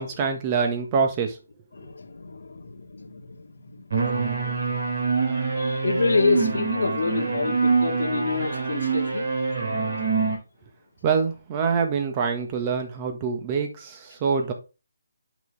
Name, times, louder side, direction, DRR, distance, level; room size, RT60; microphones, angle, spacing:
voice 1, 0.0-1.4 11.0-14.5, right 5 dB, 25° right, 1.5 m, -25 dB
voice 2, 1.7-3.9 5.5-9.3, left 4 dB, 70° left, 1.6 m, -27 dB
sound 1, 3.9-10.4, right 4 dB, 60° right, 3.7 m, -25 dB
8.9 x 5.7 x 3.4 m
hypercardioid pair, 160°, 0 cm